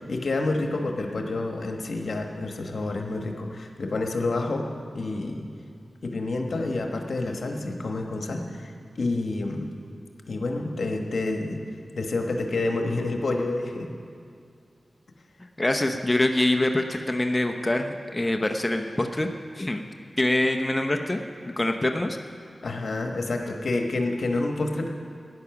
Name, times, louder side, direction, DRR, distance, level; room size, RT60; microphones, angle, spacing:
voice 1, 0.0-4.7 4.9-5.5 6.0-9.7 10.3-11.6 11.9-13.9 22.6-24.9, left 2 dB, 75° left, 3 dB, 1.2 m, -28 dB
voice 2, 15.6-19.3 19.5-19.8 20.2-21.2 21.6-22.2, left 1 dB, 25° left, 4 dB, 0.8 m, -24 dB
13.5 x 9.8 x 5.9 m, 2.3 s
cardioid pair, 50°, 0 cm